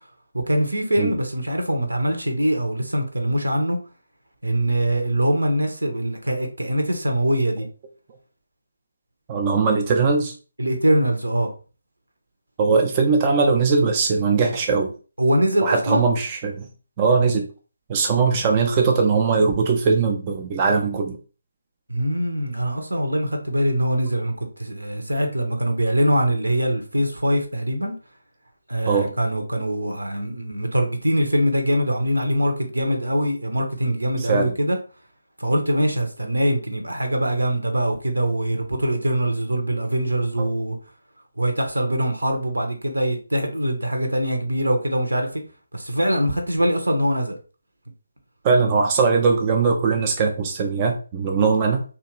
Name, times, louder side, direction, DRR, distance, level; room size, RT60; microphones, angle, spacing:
voice 1, 0.3-3.8 4.4-7.7 10.6-11.5 15.2-16.1 21.9-27.9 28.7-34.8 35.4-40.8 41.4-45.4 45.7-47.3, equal, 80° right, 0.8 m, -23 dB
voice 2, 9.3-10.3 12.6-14.9 15.6-16.7 17.0-17.5 17.9-21.2 28.9-29.1 34.2-34.5 40.4-40.5 48.4-51.8, right 4 dB, 25° right, 0.4 m, -20 dB
2.8 x 2.4 x 3.0 m
figure-of-eight pair, 150°, 0 cm